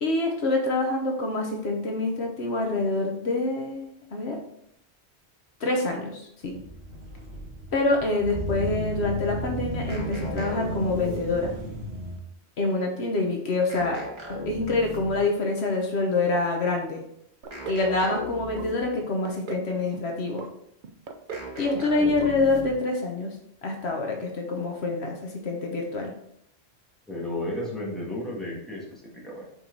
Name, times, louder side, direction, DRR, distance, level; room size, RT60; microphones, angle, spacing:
voice 1, 0.0-4.4 5.6-6.5 7.7-11.5 12.6-14.0 14.3-17.0 17.7-20.5 21.6-23.3 23.6-26.1, left 2 dB, 70° left, 1 dB, 1.2 m, -26 dB
sound 1, 6.4-12.2, equal, 75° right, 1.5 m, -34 dB
sound 2, 9.9-11.7 13.7-15.4 17.5-19.0 21.3-22.9, left 2 dB, 25° right, 1.3 m, -38 dB
sound 3, 17.4-17.9 18.1-18.7 19.0-19.7 19.9-20.5 20.8-21.5 21.7-22.0 22.2-22.3 22.7-22.8, right 5 dB, 55° right, 0.6 m, -38 dB
voice 2, 27.1-29.5, left 1 dB, ahead, -5 dB, 1.8 m, -33 dB
5.3 x 4.6 x 3.9 m, 0.72 s
omnidirectional pair, 1.1 m